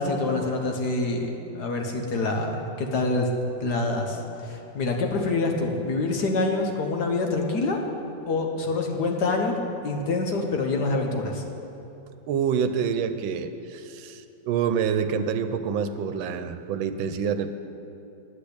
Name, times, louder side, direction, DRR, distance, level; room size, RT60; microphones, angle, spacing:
voice 1, 0.0-3.3 3.6-7.8 8.3-9.6 9.8-11.4, left 3 dB, 60° left, 2 dB, 1.7 m, -26 dB
voice 2, 12.3-17.5, right 7 dB, 85° right, 10 dB, 1.4 m, -27 dB
10.0 x 8.3 x 8.6 m, 2.8 s
omnidirectional pair, 2.1 m